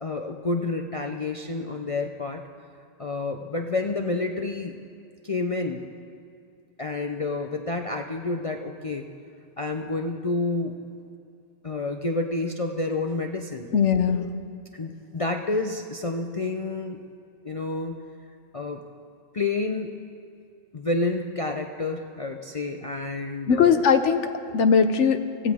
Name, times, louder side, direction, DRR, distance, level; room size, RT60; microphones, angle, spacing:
voice 1, 0.0-2.4 3.0-4.8 5.2-5.9 6.8-9.1 9.6-10.8 11.6-13.7 14.7-17.0 17.4-18.1 18.5-18.9 19.3-20.0 20.7-23.8, left 3 dB, 35° left, 3 dB, 0.6 m, -29 dB
voice 2, 13.7-14.3 23.5-25.5, left 6 dB, 75° left, 9 dB, 1.2 m, -20 dB
24.5 x 15.5 x 3.6 m, 2.4 s
omnidirectional pair, 1.2 m